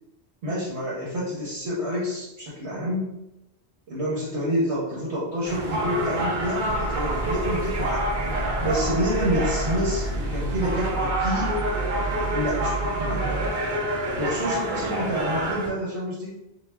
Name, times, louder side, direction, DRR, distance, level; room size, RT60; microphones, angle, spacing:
voice 1, 0.4-3.2 3.9-8.1 8.6-11.7 12.3-13.5 14.2-16.4, equal, 80° right, -6 dB, 1.1 m, -28 dB
sound 1, 5.4-15.7, right 1 dB, 55° right, 0.7 m, -28 dB
sound 2, 6.6-13.5, right 2 dB, 70° left, 0.8 m, -31 dB
2.3 x 2.2 x 3.2 m, 0.88 s
omnidirectional pair, 1.1 m